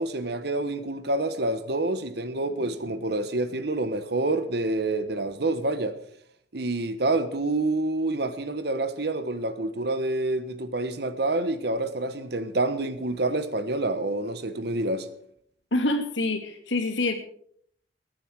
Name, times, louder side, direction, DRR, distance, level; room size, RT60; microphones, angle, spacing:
voice 1, 0.0-6.0 6.5-15.1, right 2 dB, 60° right, 1.2 m, -27 dB
voice 2, 15.7-17.1, left 2 dB, 85° left, 2.6 m, -26 dB
22.0 x 9.3 x 4.8 m
head